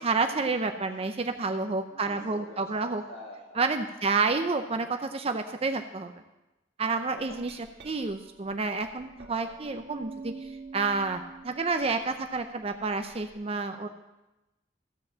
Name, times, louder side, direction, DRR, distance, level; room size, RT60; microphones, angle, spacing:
voice 1, 0.0-3.0 3.6-6.1 6.8-13.9, right 4 dB, 35° right, 7 dB, 0.6 m, -29 dB
voice 2, 1.9-4.1 7.3-7.4, left 1 dB, 65° left, -3 dB, 2.3 m, -48 dB
Glass, 7.2-13.3, right 4 dB, 75° right, 1.8 m, -47 dB
15.0 x 5.3 x 7.3 m, 0.99 s
head